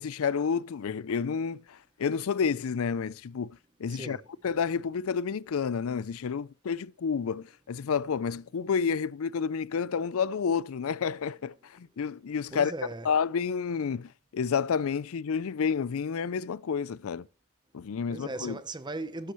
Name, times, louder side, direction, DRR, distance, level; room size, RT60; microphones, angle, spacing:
voice 1, 0.0-4.2 4.4-12.7 13.0-17.3 17.7-18.6, left 6 dB, 70° left, 0.4 m, -30 dB
voice 2, 3.9-4.2 12.5-13.1 18.1-19.3, right 2 dB, 20° right, 0.8 m, -37 dB
12.5 x 9.9 x 3.1 m
head